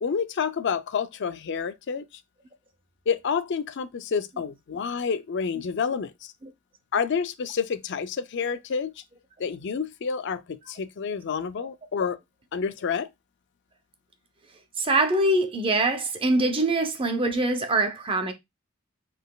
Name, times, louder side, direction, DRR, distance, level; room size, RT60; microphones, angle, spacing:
voice 1, 0.0-2.1 3.1-6.1 6.9-8.9 9.4-12.2 12.5-13.1, left 6 dB, 55° left, 0.4 m, -28 dB
voice 2, 14.8-18.3, right 2 dB, 25° right, 0.6 m, -24 dB
5.1 x 4.1 x 2.3 m
head